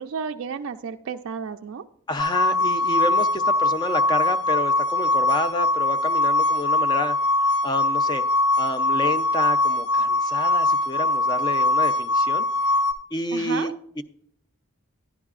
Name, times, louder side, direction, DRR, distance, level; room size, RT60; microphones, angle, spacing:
voice 1, 0.0-1.8 13.3-13.7, right 6 dB, 60° right, 5 dB, 0.3 m, -32 dB
voice 2, 2.1-8.2 8.6-12.4 13.1-14.0, left 2 dB, 20° left, 11 dB, 0.4 m, -29 dB
sound 1, 2.2-12.9, left 2 dB, 60° left, 1.3 m, -22 dB
11.5 x 11.0 x 2.4 m, 0.69 s
head